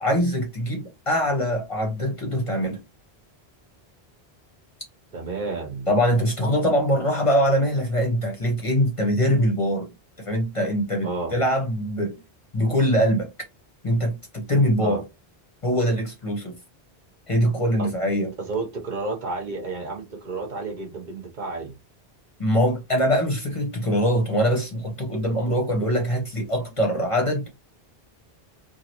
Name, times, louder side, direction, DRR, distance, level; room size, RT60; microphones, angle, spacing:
voice 1, 0.0-2.8 5.9-9.9 10.2-12.2 12.5-13.3 13.8-15.0 15.6-16.5 17.3-18.3 22.4-27.5, equal, 35° left, 0.8 m, -23 dB
voice 2, 5.1-5.9 11.0-11.3 14.8-15.0 17.8-17.9 18.4-21.7, right 3 dB, 50° right, 0.7 m, -31 dB
3.0 x 2.5 x 2.8 m
omnidirectional pair, 1.1 m